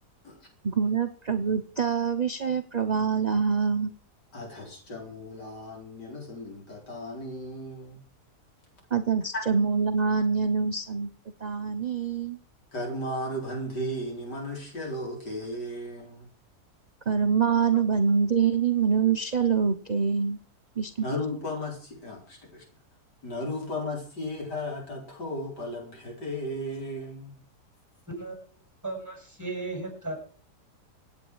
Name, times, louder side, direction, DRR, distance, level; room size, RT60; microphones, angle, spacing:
voice 1, 0.6-3.9 8.9-11.1 11.4-12.4 17.1-20.4 20.8-20.9, right 6 dB, 35° right, 7 dB, 0.8 m, -25 dB
voice 2, 4.3-8.0 9.3-9.4 12.7-16.3 21.0-22.6 23.2-27.3, left 1 dB, 85° left, 1 dB, 5.0 m, -35 dB
voice 3, 28.8-30.2, right 2 dB, 10° right, 1 dB, 7.3 m, -35 dB
25.0 x 9.1 x 4.7 m, 0.42 s
omnidirectional pair, 1.8 m